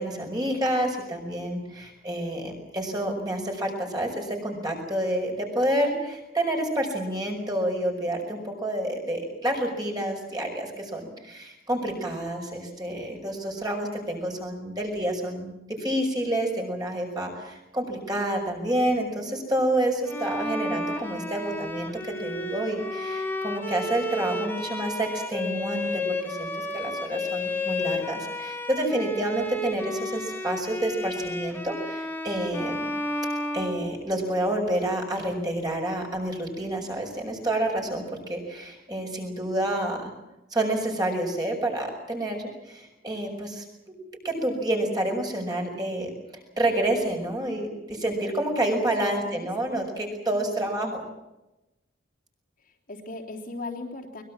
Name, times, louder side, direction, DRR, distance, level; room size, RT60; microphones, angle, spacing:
voice 1, 0.0-32.9 33.5-40.1 40.5-43.6 44.2-46.1 46.6-51.0, right 1 dB, 20° right, 1 dB, 5.7 m, -29 dB
Bowed string instrument, 20.1-34.3, left 1 dB, 10° left, 2.3 m, -32 dB
voice 2, 49.2-49.9 50.3-50.9 52.9-54.2, left 2 dB, 45° left, 1 dB, 3.6 m, -39 dB
23.5 x 21.5 x 7.3 m, 0.96 s
head